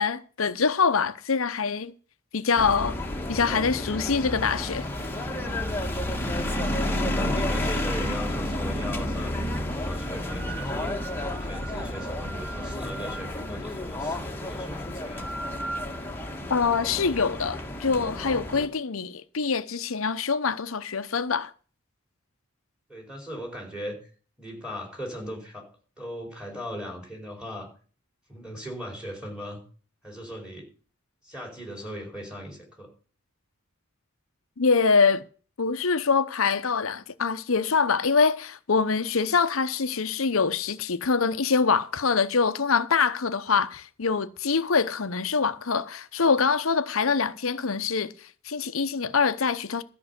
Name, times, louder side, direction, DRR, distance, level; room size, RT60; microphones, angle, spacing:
voice 1, 0.0-1.9 2.3-3.0 3.3-4.9 16.5-21.5 34.6-35.2 35.6-49.8, left 5 dB, 70° left, 0.8 m, -24 dB
sound 1, 2.6-18.7, left 1 dB, 10° left, 1.7 m, -31 dB
voice 2, 5.9-11.0 11.4-15.4 22.9-24.1 24.4-25.7 26.0-27.7 28.3-29.6 30.0-30.7 31.2-32.9, equal, 5° right, 4.8 m, -39 dB
13.5 x 5.5 x 8.1 m
head